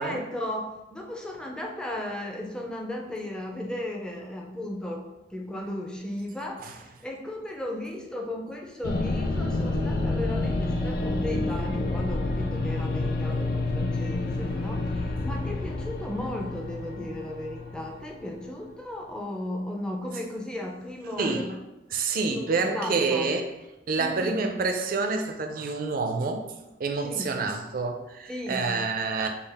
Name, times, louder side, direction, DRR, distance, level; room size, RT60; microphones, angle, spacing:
voice 1, 0.0-5.0 5.3-21.5 22.2-23.3 24.0-24.4 27.0-27.3 28.3-28.7, left 1 dB, 5° left, 0 dB, 0.5 m, -35 dB
sound 1, 8.8-18.3, left 2 dB, 55° left, 0.5 m, -29 dB
voice 2, 21.2-21.6 21.9-23.4 23.9-26.5 26.8-29.3, right 4 dB, 50° right, 5 dB, 0.5 m, -28 dB
5.4 x 2.4 x 3.4 m, 0.99 s
head